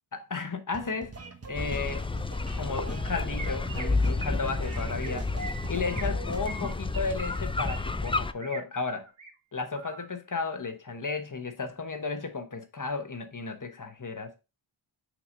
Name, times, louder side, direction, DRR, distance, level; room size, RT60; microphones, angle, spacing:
voice 1, 0.3-1.1 1.5-2.1 2.5-5.3 5.7-9.1 9.5-14.4, left 4 dB, 40° left, 1.1 m, -34 dB
sound 1, 0.7-6.4, right 3 dB, 30° right, 0.9 m, -43 dB
sound 2, 1.5-8.3, left 3 dB, 10° left, 0.3 m, -30 dB
Chirp tweet, 3.4-3.8 4.2-4.4 4.7-5.1 5.4-6.1 6.4-7.8 8.0-8.6 9.0-9.3 9.7-10.1, right 4 dB, 75° right, 1.7 m, -42 dB
6.0 x 3.0 x 5.2 m
wide cardioid pair, 55°, 48 cm